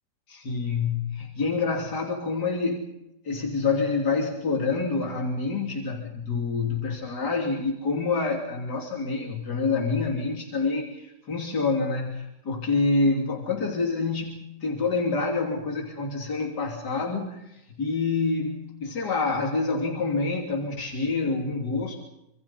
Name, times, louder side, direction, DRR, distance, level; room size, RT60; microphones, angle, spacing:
voice 1, 0.3-2.9 3.3-22.0, left 3 dB, 80° left, -1 dB, 3.7 m, -27 dB
27.0 x 27.0 x 4.2 m, 0.89 s
omnidirectional pair, 1.7 m